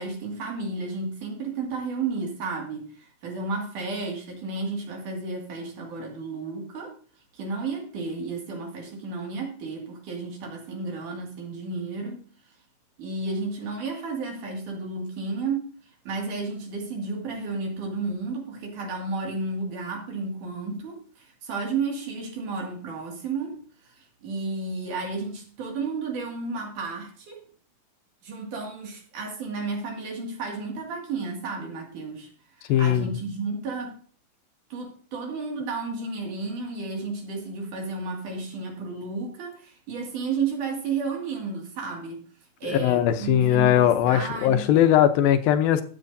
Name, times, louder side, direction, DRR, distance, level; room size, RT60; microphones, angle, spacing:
voice 1, 0.0-6.9 7.3-12.3 13.0-15.7 16.1-27.4 28.2-32.3 32.6-34.0 34.7-42.2 42.6-44.7, right 4 dB, 60° right, 3.6 m, -32 dB
voice 2, 32.7-33.2 42.6-45.8, left 11 dB, 80° left, 2.5 m, -20 dB
14.0 x 9.3 x 2.7 m
omnidirectional pair, 4.2 m